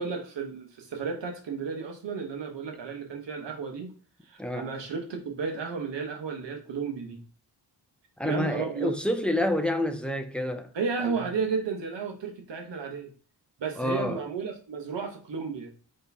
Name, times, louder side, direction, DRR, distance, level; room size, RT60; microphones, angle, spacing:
voice 1, 0.0-3.9 4.2-7.2 8.2-8.9 10.7-13.1 13.6-15.7, right 5 dB, 85° right, 1.1 m, -33 dB
voice 2, 4.4-4.7 8.2-10.7 11.0-11.2 13.8-14.2, left 1 dB, 5° left, 0.4 m, -28 dB
4.7 x 3.1 x 3.3 m
wide cardioid pair, 105°, 42 cm